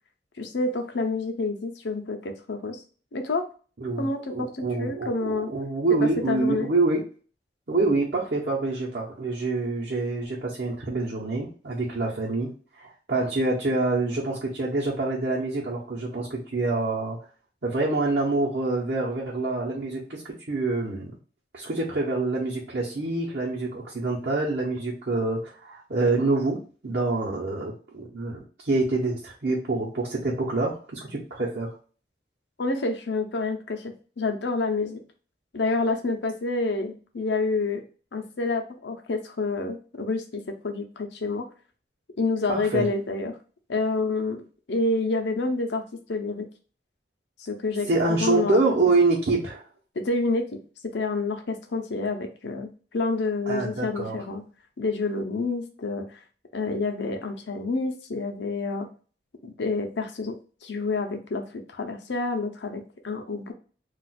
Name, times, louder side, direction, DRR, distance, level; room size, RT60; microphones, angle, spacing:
voice 1, 0.4-2.8 3.1-3.5 4.0-5.5 6.0-6.7 32.6-35.0 35.5-37.8 38.1-41.5 42.2-43.3 43.7-44.4 44.7-45.8 46.1-46.5 47.4-48.6 49.9-50.6 50.8-54.4 54.8-56.2 56.5-58.9 59.4-60.3 60.6-63.5, left 3 dB, 80° left, 5 dB, 0.6 m, -28 dB
voice 2, 3.8-7.0 7.7-12.5 12.7-17.2 17.6-21.1 21.5-26.6 26.8-31.8 42.5-42.9 47.9-49.6 53.5-54.2, right 3 dB, 60° right, -6 dB, 0.8 m, -26 dB
2.4 x 2.3 x 4.1 m, 0.38 s
head